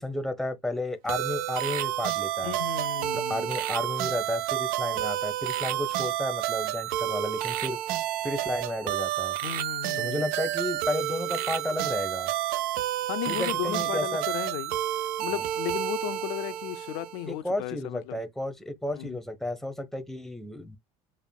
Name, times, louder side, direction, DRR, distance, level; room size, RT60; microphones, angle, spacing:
voice 1, 0.0-2.6 3.1-7.8 8.2-9.3 10.0-12.3 13.3-14.2 17.3-20.8, left 1 dB, ahead, 0.9 m, -32 dB
sound 1, 1.1-17.3, right 13 dB, 60° right, 0.5 m, -30 dB
voice 2, 2.4-3.5 9.4-10.2 13.1-14.7 15.2-18.2 18.9-19.2, left 15 dB, 70° left, 0.4 m, -35 dB
7.1 x 2.5 x 2.3 m
hypercardioid pair, 75°, 17 cm